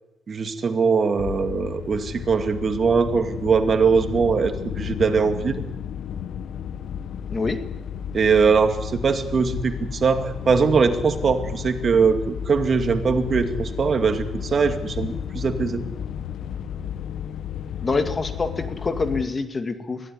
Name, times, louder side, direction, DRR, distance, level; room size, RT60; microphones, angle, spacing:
voice 1, 0.3-5.6 8.1-15.8, right 5 dB, 45° right, 7 dB, 2.3 m, -21 dB
sound 1, 1.2-19.3, left 8 dB, 70° left, 0.9 m, -33 dB
voice 2, 17.8-20.0, left 3 dB, 30° left, 8 dB, 2.2 m, -26 dB
22.0 x 16.0 x 9.8 m, 0.99 s
cardioid pair, 90°, 0 cm